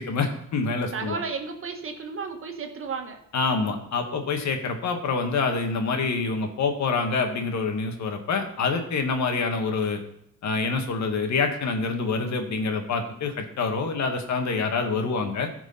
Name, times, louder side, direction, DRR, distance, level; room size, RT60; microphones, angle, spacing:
voice 1, 0.0-1.2 3.3-10.0 10.4-15.5, left 4 dB, 65° left, 5 dB, 1.8 m, -26 dB
voice 2, 0.9-3.2, right 5 dB, 45° right, 4 dB, 1.6 m, -33 dB
14.5 x 4.8 x 5.7 m, 0.74 s
cardioid pair, 90°, 30 cm